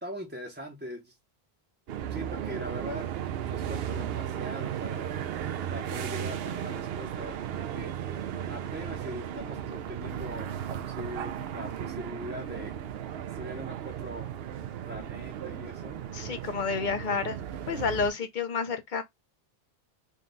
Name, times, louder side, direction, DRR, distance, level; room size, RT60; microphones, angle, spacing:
voice 1, 0.0-1.2 2.1-3.1 3.5-5.2 5.7-7.9 8.5-12.8 13.3-14.3 14.9-16.0, equal, 15° right, 0.6 m, -41 dB
sound 1, 1.9-18.1, right 9 dB, 75° right, 0.8 m, -35 dB
voice 2, 16.1-17.4 17.7-19.0, left 5 dB, 55° left, 0.7 m, -30 dB
3.8 x 2.3 x 3.8 m
omnidirectional pair, 1.0 m